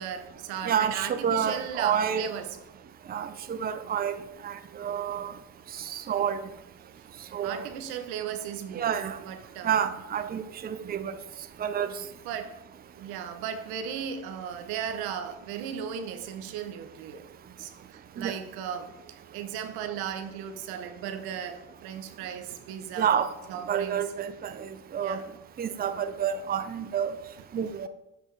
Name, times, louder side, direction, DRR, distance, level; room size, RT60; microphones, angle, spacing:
voice 1, 0.0-2.6 6.9-7.1 7.4-8.9 9.2-9.7 12.2-12.6 12.9-17.3 17.6-23.1 23.5-24.1 25.0-25.3, right 8 dB, 90° right, 0.8 m, -36 dB
voice 2, 0.7-2.3 3.1-4.2 4.4-5.3 5.9-6.4 7.3-7.6 8.7-9.2 9.6-11.1 11.6-11.9 18.2-18.4 23.0-23.3 23.7-24.7 24.9-25.2 25.6-27.1 27.5-27.9, right 8 dB, 25° right, 0.5 m, -28 dB
7.3 x 5.3 x 3.3 m
supercardioid pair, 85°, 37 cm